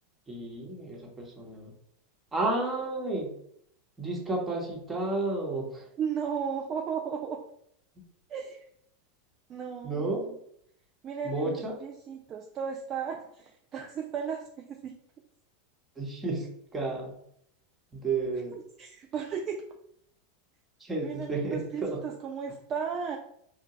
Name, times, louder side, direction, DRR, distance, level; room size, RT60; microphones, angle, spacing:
voice 1, 0.3-1.7 2.3-3.3 4.0-5.9 9.8-10.2 11.2-11.7 16.0-16.5 16.7-17.1 17.9-18.6 20.8-22.0, right 2 dB, 10° right, -2 dB, 1.1 m, -31 dB
voice 2, 6.0-7.4 8.3-8.6 9.5-10.3 11.0-15.0 18.8-19.6 21.0-23.2, right 7 dB, 35° right, 1 dB, 0.3 m, -35 dB
3.6 x 2.2 x 3.0 m, 0.70 s
figure-of-eight pair, 85°, 0 cm